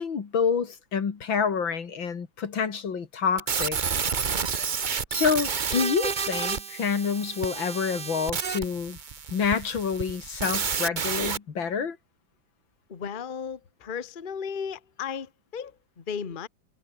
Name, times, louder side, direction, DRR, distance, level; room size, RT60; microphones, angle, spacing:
voice 1, 0.0-3.8 5.1-9.0 9.3-12.0, left 6 dB, 80° left, 3.0 m, -27 dB
sound 1, 3.4-11.4, right 6 dB, 40° right, 0.7 m, -30 dB
voice 2, 12.9-16.5, left 6 dB, 30° left, 1.2 m, -35 dB
omnidirectional pair, 2.1 m